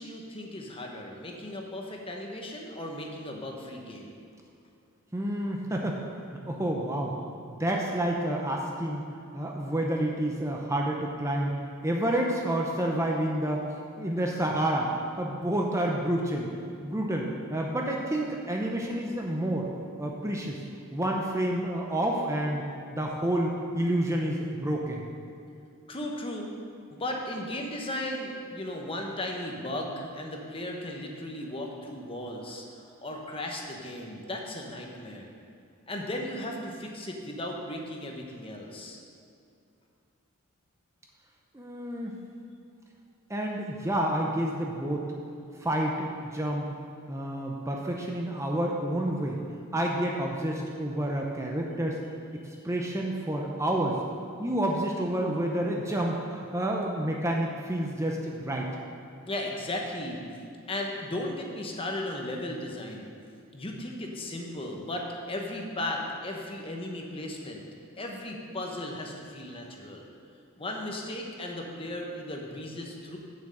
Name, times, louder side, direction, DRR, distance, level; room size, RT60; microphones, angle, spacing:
voice 1, 0.0-4.1 25.9-26.5 26.9-35.3 35.9-39.0 59.2-60.2 60.7-63.1 63.5-67.6 68.0-70.1 70.6-73.2, left 1 dB, 25° left, 1 dB, 1.0 m, -36 dB
voice 2, 5.1-6.1 6.5-7.1 7.6-9.0 9.3-11.5 11.8-13.6 14.0-14.9 15.2-16.5 16.8-19.7 20.0-20.6 20.9-22.6 22.9-25.0 41.5-42.2 43.3-45.1 45.6-46.7 47.1-49.4 49.7-52.0 52.6-54.0 54.4-58.7, right 1 dB, 15° right, 0 dB, 0.7 m, -29 dB
7.2 x 6.2 x 7.8 m, 2.5 s
head